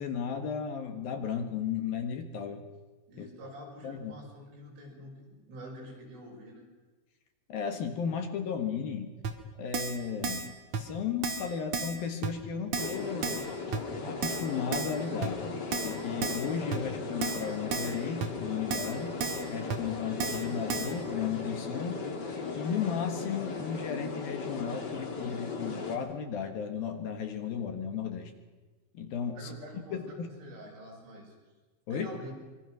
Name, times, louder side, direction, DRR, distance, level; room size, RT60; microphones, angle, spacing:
voice 1, 0.0-2.6 3.2-3.3 3.8-4.2 7.5-9.1 9.6-13.4 14.0-19.2 19.5-22.0 22.6-28.3 28.9-30.3 31.9-32.1, left 7 dB, 60° left, 6 dB, 2.9 m, -35 dB
voice 2, 3.1-6.7 29.3-31.4 31.9-32.3, equal, 80° right, -2 dB, 9.1 m, -47 dB
Keyboard (musical), 9.2-9.3 9.7-10.0 10.2-10.5 10.7-10.8 11.2-11.5 11.7-12.0 12.2-12.3 12.7-13.0 13.2-13.5 13.7-13.8 14.2-14.5 14.7-14.9 15.2-15.3 15.7-15.9 16.2-16.5 16.7-16.8 17.2-17.4 17.7-17.9 18.2-18.3 18.7-18.9 19.2-19.4 19.7-19.8 20.2-20.4 20.7-20.9, right 5 dB, 55° right, 2.1 m, -32 dB
sound 1, 12.8-26.0, left 4 dB, 45° left, 1.3 m, -37 dB
26.0 x 23.0 x 6.3 m, 1.3 s
omnidirectional pair, 5.5 m